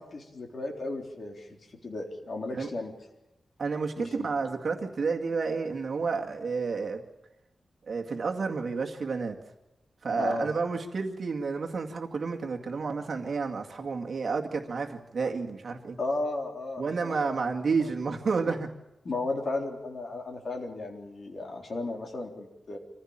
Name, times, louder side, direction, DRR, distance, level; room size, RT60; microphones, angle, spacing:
voice 1, 0.0-1.5 1.8-2.9 4.0-4.3 10.1-10.5 16.0-17.5 17.8-17.9 18.5-18.6 19.0-22.8, left 2 dB, 45° left, 2 dB, 3.8 m, -34 dB
voice 2, 3.6-7.0 7.9-9.4 10.0-16.0 16.8-18.7, right 4 dB, 50° right, 2 dB, 2.1 m, -30 dB
25.5 x 15.5 x 8.9 m, 0.96 s
wide cardioid pair, 140°, 0 cm